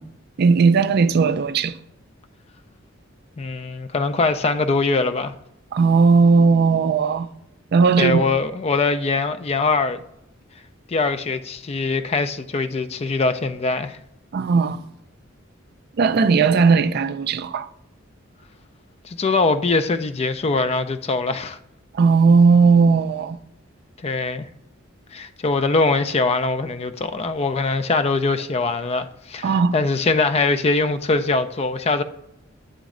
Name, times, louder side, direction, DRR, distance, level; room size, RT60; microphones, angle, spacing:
voice 1, 0.4-1.8 5.7-7.3 7.7-8.3 14.3-14.8 16.0-17.7 21.9-23.4 29.4-29.8, right 4 dB, 55° right, 0.4 m, -17 dB
voice 2, 3.4-5.3 8.0-10.0 10.9-14.0 19.0-21.6 24.0-24.5 25.1-32.0, left 3 dB, 30° left, 0.4 m, -22 dB
8.7 x 3.1 x 3.7 m
head